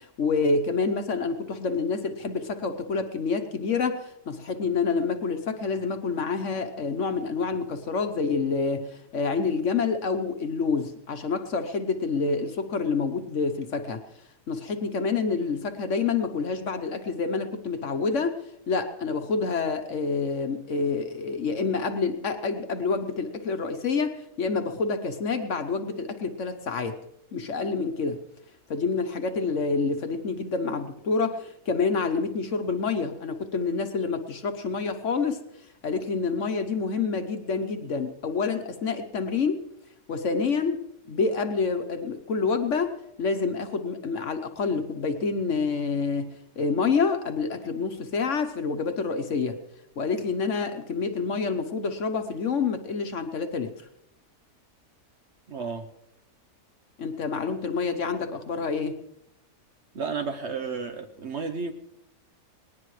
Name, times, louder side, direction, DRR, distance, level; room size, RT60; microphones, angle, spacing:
voice 1, 0.0-14.0 14.5-18.4 18.7-27.0 27.3-28.2 28.7-35.4 35.8-39.6 40.1-40.8 41.1-49.6 50.0-53.7 57.0-59.0, left 4 dB, 55° left, 7 dB, 1.2 m, -28 dB
voice 2, 55.5-55.9 59.9-61.7, right 5 dB, 50° right, 8 dB, 1.0 m, -32 dB
20.0 x 18.5 x 3.2 m, 0.79 s
omnidirectional pair, 1.7 m